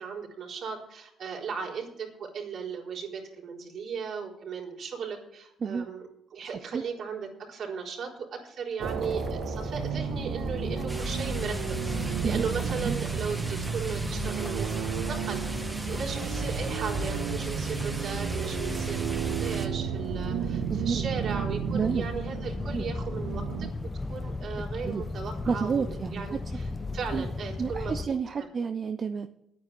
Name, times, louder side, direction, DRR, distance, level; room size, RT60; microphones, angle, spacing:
voice 1, 0.0-15.6 15.9-26.7 26.9-28.5, right 6 dB, 65° right, -1 dB, 4.2 m, -37 dB
sound 1, 8.8-28.1, left 3 dB, 25° left, 1.0 m, -36 dB
sound 2, 8.8-23.7, right 12 dB, 85° right, 0.4 m, -34 dB
sound 3, 10.9-19.7, right 1 dB, 10° right, 2.0 m, -37 dB
voice 2, 20.7-21.1 21.7-22.1 22.7-22.8 24.8-25.0 25.5-26.4 27.1-27.3 27.6-29.3, right 6 dB, 45° right, 8 dB, 0.7 m, -30 dB
10.5 x 9.4 x 7.8 m, 0.79 s
cardioid pair, 90°, 0 cm